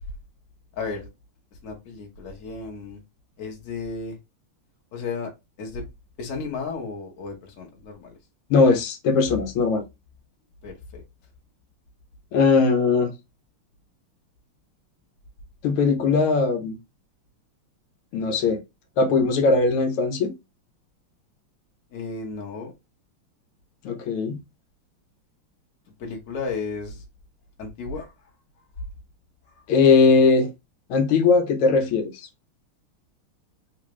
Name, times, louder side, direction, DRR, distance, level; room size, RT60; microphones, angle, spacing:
voice 1, 0.8-1.1 1.6-3.0 3.4-4.2 4.9-5.3 5.6-5.8 6.2-8.2 10.6-11.0 21.9-22.7 26.0-27.0 27.6-28.1 29.5-29.6, left 4 dB, 50° left, 1.1 m, -33 dB
voice 2, 8.5-9.8 12.3-13.1 15.6-16.8 18.1-18.6 19.0-20.3 23.8-24.4 29.7-30.5 30.9-32.1, left 4 dB, 85° left, 1.6 m, -19 dB
3.8 x 2.4 x 3.0 m
omnidirectional pair, 2.4 m